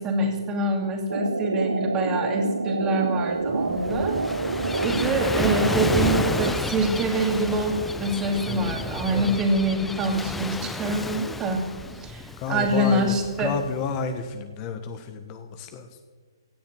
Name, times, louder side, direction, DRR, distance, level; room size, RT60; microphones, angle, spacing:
voice 1, 0.0-4.2 4.5-11.6 12.0-13.5, right 1 dB, 20° right, 3 dB, 2.7 m, -25 dB
sound 1, 1.1-6.5, right 3 dB, 90° right, 0.8 m, -27 dB
Gull seagull / Waves surf, 3.4-14.0, left 3 dB, 5° left, 0.6 m, -32 dB
voice 2, 8.5-9.4 12.4-15.9, left 5 dB, 30° left, 8 dB, 1.4 m, -31 dB
16.5 x 7.1 x 9.5 m, 1.4 s
hypercardioid pair, 135°, 2 cm